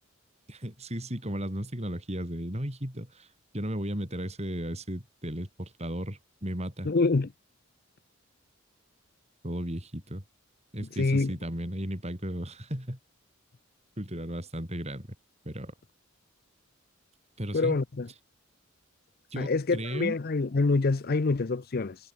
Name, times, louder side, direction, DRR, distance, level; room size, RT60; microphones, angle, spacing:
voice 1, 0.5-3.3 3.5-6.9 9.4-10.2 10.7-13.0 14.0-15.1 15.4-15.7 17.4-17.8 19.3-20.2, equal, 30° right, 5.8 m, -35 dB
voice 2, 6.8-7.3 11.0-11.3 17.5-18.1 19.4-22.0, left 3 dB, 45° left, 0.6 m, -26 dB
head